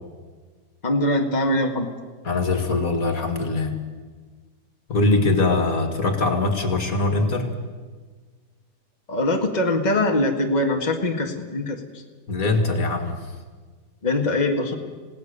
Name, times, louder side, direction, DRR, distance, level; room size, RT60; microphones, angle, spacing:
voice 1, 0.8-1.9 9.1-11.8 14.0-14.7, left 1 dB, 25° left, 2 dB, 1.9 m, -22 dB
voice 2, 2.2-3.8 4.9-7.5 12.3-13.2, left 3 dB, 60° left, 6 dB, 2.4 m, -22 dB
27.5 x 18.0 x 6.8 m, 1.5 s
omnidirectional pair, 1.7 m